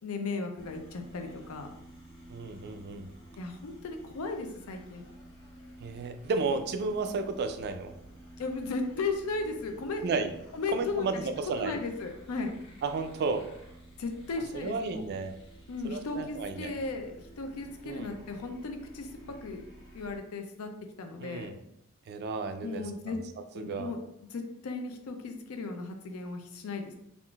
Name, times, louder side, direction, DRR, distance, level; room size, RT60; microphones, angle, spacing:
voice 1, 0.0-1.7 3.4-5.0 8.4-10.0 10.5-11.2 11.6-12.5 14.0-15.0 15.7-19.1 19.4-19.7 19.9-20.7 21.0-21.5 22.6-23.2 23.5-24.0 24.3-26.9, left 3 dB, 85° left, 5 dB, 0.5 m, -36 dB
sound 1, 0.6-20.2, right 1 dB, 25° left, 1.2 m, -52 dB
voice 2, 2.3-3.1 5.8-7.9 10.0-10.3 10.7-11.8 12.8-13.5 14.5-15.3 15.8-16.7 17.8-18.1 21.2-21.5 22.1-23.2 23.6-23.9, right 4 dB, 50° right, 8 dB, 0.3 m, -33 dB
3.6 x 2.4 x 2.3 m, 0.78 s
head